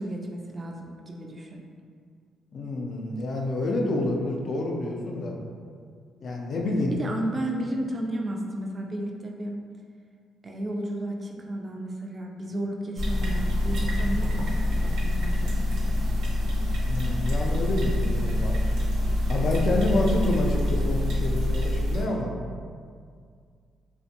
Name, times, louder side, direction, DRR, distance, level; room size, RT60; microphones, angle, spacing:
voice 1, 0.0-1.6 6.9-9.6 10.4-15.7 20.0-20.2, right 1 dB, 35° right, 1 dB, 0.3 m, -33 dB
voice 2, 2.5-5.4 6.2-6.9 16.8-18.6 19.3-22.3, left 1 dB, 55° left, 0 dB, 0.4 m, -28 dB
sound 1, 13.0-22.0, left 1 dB, 80° right, 0.5 m, -25 dB
2.5 x 2.1 x 2.7 m, 2.1 s
cardioid pair, 90°, 0 cm